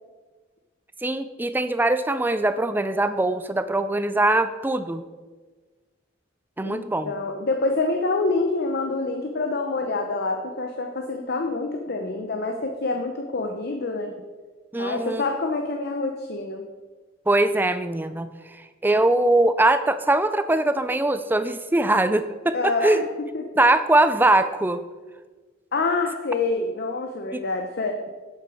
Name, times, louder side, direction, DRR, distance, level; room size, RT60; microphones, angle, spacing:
voice 1, 1.0-5.0 6.6-7.1 14.7-15.2 17.3-23.0 23.6-24.8 27.3-27.4, right 2 dB, 10° right, 11 dB, 0.4 m, -22 dB
voice 2, 6.6-14.1 14.8-16.6 22.5-23.0 23.3-23.4 25.7-28.0, left 3 dB, 55° left, 4 dB, 0.7 m, -26 dB
8.2 x 7.9 x 4.9 m, 1.3 s
head